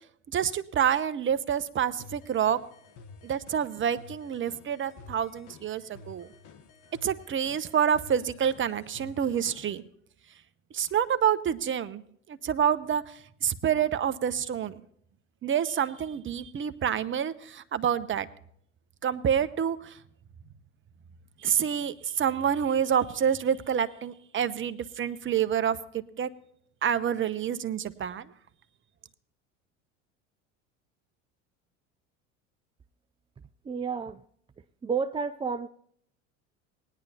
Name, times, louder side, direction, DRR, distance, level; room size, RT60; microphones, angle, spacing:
voice 1, 0.3-2.6 3.2-6.3 7.0-9.8 10.7-12.0 12.3-13.0 13.4-14.7 15.4-18.3 19.0-20.0 21.4-26.3 26.8-28.3, right 8 dB, 30° right, 0.9 m, -27 dB
sound 1, 2.0-9.8, left 4 dB, 55° left, 1.3 m, -51 dB
voice 2, 33.7-34.2 34.8-35.7, right 5 dB, 15° right, 0.4 m, -30 dB
19.5 x 10.0 x 2.8 m
hypercardioid pair, 75°, 38 cm